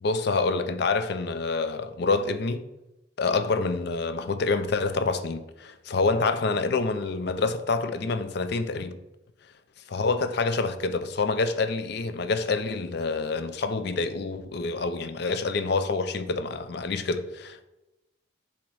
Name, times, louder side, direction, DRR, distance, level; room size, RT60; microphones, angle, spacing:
voice 1, 0.0-2.6 3.2-9.0 9.9-17.6, left 3 dB, 60° left, 0.5 m, -27 dB
7.2 x 2.9 x 4.7 m
head